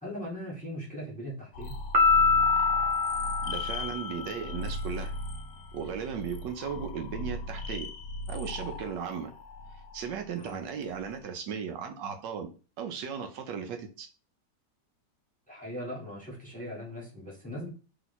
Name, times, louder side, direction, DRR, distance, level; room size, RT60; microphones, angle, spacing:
voice 1, 0.0-1.8 10.4-10.6 15.5-17.7, equal, 5° left, 1.1 m, -39 dB
sound 1, 1.5-11.2, left 2 dB, 70° left, 0.9 m, -38 dB
Piano, 1.9-4.5, left 4 dB, 60° right, 1.2 m, -25 dB
voice 2, 3.4-5.1 5.7-7.9 8.3-9.3 9.9-14.1, right 7 dB, 75° right, 1.3 m, -36 dB
3.2 x 3.0 x 4.0 m
omnidirectional pair, 1.9 m